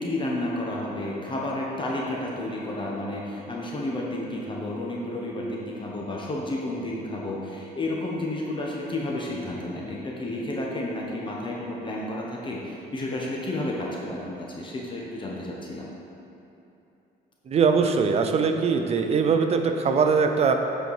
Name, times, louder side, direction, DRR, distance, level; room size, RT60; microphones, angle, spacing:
voice 1, 0.0-15.9, left 1 dB, 30° left, -3 dB, 1.0 m, -31 dB
voice 2, 17.5-20.5, right 5 dB, 40° right, 5 dB, 0.6 m, -21 dB
8.1 x 4.5 x 4.8 m, 2.8 s
cardioid pair, 110°, 17 cm